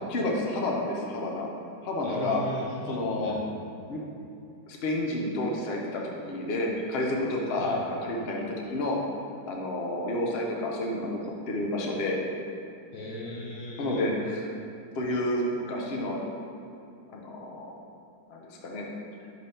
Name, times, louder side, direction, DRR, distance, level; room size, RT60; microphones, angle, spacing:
voice 1, 0.1-1.5 1.8-2.4 2.9-3.4 3.9-4.0 4.7-9.0 9.5-12.2 13.8-14.5 14.9-16.2 17.1-17.8 18.3-18.9, left 1 dB, 80° left, -1 dB, 0.5 m, -30 dB
voice 2, 2.0-3.4 7.6-7.8 12.9-14.1, left 1 dB, 55° left, -4 dB, 1.5 m, -37 dB
6.6 x 3.4 x 5.5 m, 2.7 s
omnidirectional pair, 2.1 m